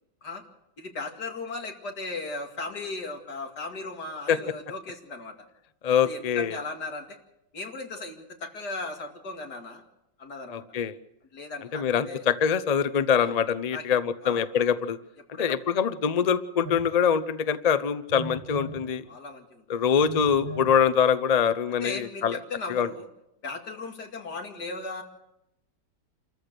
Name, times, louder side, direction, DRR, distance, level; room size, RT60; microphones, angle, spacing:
voice 1, 0.8-5.3 6.0-7.2 7.5-9.8 10.2-10.6 11.3-12.2 13.2-13.4 13.7-13.8 14.2-14.4 15.3-15.7 19.1-19.6 21.8-23.1 23.4-25.0, left 3 dB, 60° left, 3 dB, 3.0 m, -37 dB
voice 2, 5.8-6.6 10.5-11.0 11.7-15.0 15.4-19.0 19.7-22.4 22.7-22.9, left 7 dB, 75° left, 13 dB, 0.3 m, -24 dB
Telephone, 16.6-16.9 18.1-18.8 20.0-20.7, right 2 dB, 70° right, 3.7 m, -37 dB
28.0 x 14.0 x 6.7 m, 0.85 s
omnidirectional pair, 2.0 m